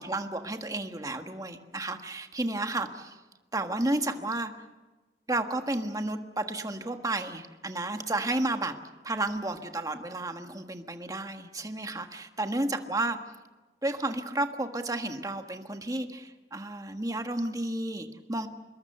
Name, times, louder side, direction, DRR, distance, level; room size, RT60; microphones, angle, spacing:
voice 1, 0.0-3.2 3.5-4.5 5.3-8.7 9.0-13.2 13.8-18.5, right 2 dB, 20° right, 6 dB, 1.5 m, -32 dB
26.5 x 21.5 x 6.8 m, 1.2 s
head